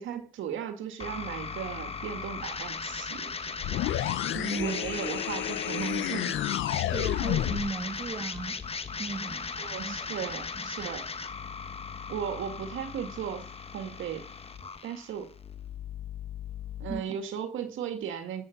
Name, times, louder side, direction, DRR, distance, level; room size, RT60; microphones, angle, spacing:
voice 1, 0.0-3.5 4.6-6.4 9.6-11.1 12.1-13.5 13.7-14.3 14.8-15.3 16.8-18.4, right 8 dB, 80° right, 1.9 m, -36 dB
sound 1, 1.0-17.0, left 5 dB, 30° left, 1.1 m, -38 dB
sound 2, 3.6-7.8, left 13 dB, 75° left, 0.6 m, -30 dB
voice 2, 4.3-4.8 6.9-8.6 9.0-9.5 9.8-10.7 16.9-17.2, right 4 dB, 25° right, 2.3 m, -37 dB
11.5 x 7.9 x 5.9 m
cardioid pair, 90°, 20 cm